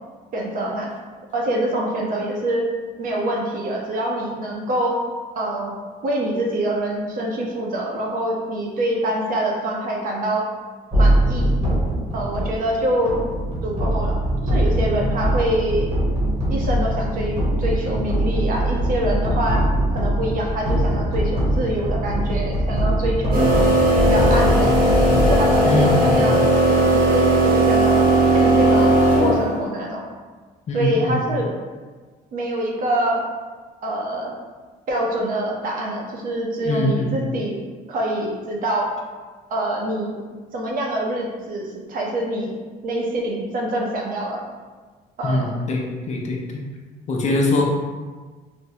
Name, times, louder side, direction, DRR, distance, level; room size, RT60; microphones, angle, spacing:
voice 1, 0.3-0.9 1.3-2.6 3.0-5.0 5.3-5.8 6.0-10.5 10.9-11.5 12.1-13.2 13.6-15.9 16.5-19.6 19.9-23.7 24.0-24.8 25.1-26.4 26.7-28.1 28.3-28.9 29.2-30.1 30.7-31.5 32.3-33.2 33.8-34.3 34.9-37.6 37.9-38.9 39.5-40.2 40.5-42.6 42.8-44.4 45.2-45.5, right 1 dB, 55° right, -1 dB, 0.7 m, -25 dB
sound 1, 10.9-26.2, right 1 dB, 40° right, 1.0 m, -22 dB
sound 2, 23.3-29.6, right 1 dB, 80° right, 1.4 m, -17 dB
voice 2, 25.7-26.4 30.7-31.2 36.6-37.1 45.2-46.4 47.1-47.6, left 2 dB, 40° left, -1 dB, 0.6 m, -22 dB
3.4 x 2.0 x 2.8 m, 1.4 s
cardioid pair, 110°, 17 cm